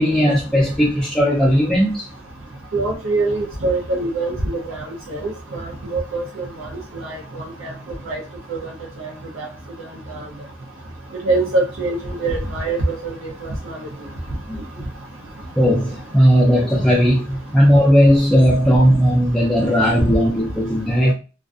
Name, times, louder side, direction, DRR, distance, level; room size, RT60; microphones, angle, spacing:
voice 1, 0.0-2.1 14.5-14.6 15.6-21.1, equal, 5° left, -4 dB, 0.4 m, -16 dB
voice 2, 2.7-7.7 8.1-8.2 8.5-8.7 9.0-9.5 10.1-10.2 11.2-13.8, right 2 dB, 85° right, 0 dB, 0.6 m, -24 dB
2.4 x 2.3 x 2.4 m, 0.32 s
head